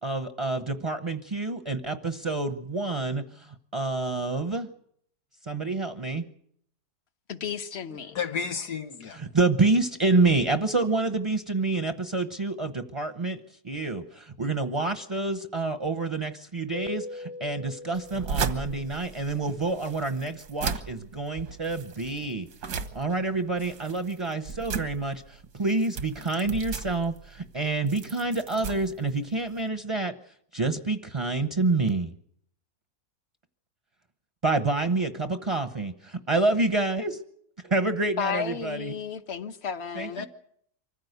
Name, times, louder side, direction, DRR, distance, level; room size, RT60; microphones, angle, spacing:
voice 1, 0.0-4.7 5.4-6.2 9.1-22.5 22.9-30.1 30.5-32.1 34.4-37.1 37.6-39.0 39.9-40.2, right 3 dB, 25° right, 0.8 m, -28 dB
voice 2, 7.3-8.2 38.2-40.3, left 7 dB, 45° left, 1.2 m, -33 dB
voice 3, 7.9-9.2 40.2-40.3, left 6 dB, 85° left, 2.0 m, -32 dB
Keyboard (musical), 16.7-19.3, left 2 dB, 30° left, 0.9 m, -42 dB
sound 1, 17.9-29.7, right 5 dB, 85° right, 1.9 m, -37 dB
25.0 x 15.5 x 8.1 m
omnidirectional pair, 1.7 m